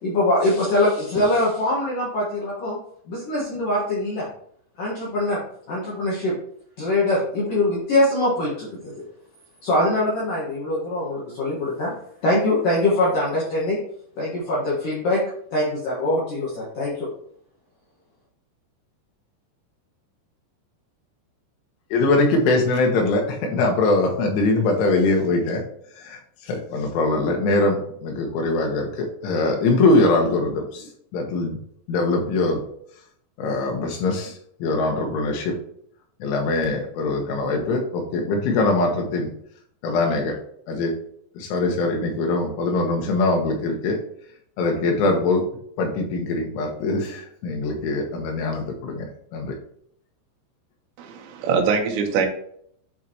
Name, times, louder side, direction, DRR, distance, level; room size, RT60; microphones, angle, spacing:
voice 1, 0.0-2.8 3.1-4.3 4.8-5.4 5.7-6.3 6.8-8.9 9.6-11.9 12.2-13.8 14.2-15.2 15.5-17.1, left 1 dB, 55° left, -6 dB, 2.8 m, -23 dB
voice 2, 21.9-25.6 26.0-31.6 31.9-32.6 33.4-35.6 36.2-39.3 39.8-40.4 40.7-40.9 41.4-44.0 44.6-45.4 45.8-49.1 49.3-49.6, left 2 dB, 85° left, 2 dB, 3.9 m, -22 dB
voice 3, 51.0-52.3, right 5 dB, 75° right, 2 dB, 3.2 m, -23 dB
11.0 x 5.0 x 3.1 m, 0.66 s
omnidirectional pair, 5.4 m